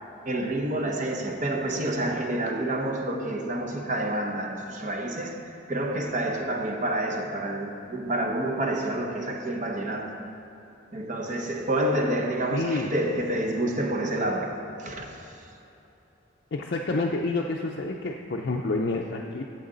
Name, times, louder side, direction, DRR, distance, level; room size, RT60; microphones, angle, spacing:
voice 1, 0.3-10.2 10.9-15.2, right 1 dB, 40° right, 0.8 m, -28 dB
voice 2, 12.5-12.9 16.5-19.5, left 3 dB, 55° left, 0.4 m, -28 dB
12.0 x 7.9 x 3.9 m
head